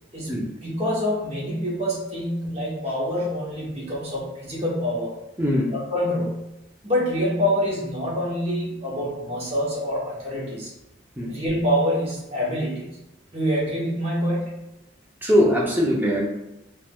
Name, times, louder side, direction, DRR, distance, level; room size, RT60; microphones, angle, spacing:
voice 1, 0.6-5.1 5.7-6.4 6.8-10.7 11.3-13.0 13.3-14.6, equal, 30° right, -5 dB, 0.8 m, -26 dB
voice 2, 5.4-5.8 11.2-11.3 15.2-16.3, equal, 10° right, -4 dB, 0.5 m, -21 dB
4.4 x 2.2 x 2.2 m, 0.92 s
head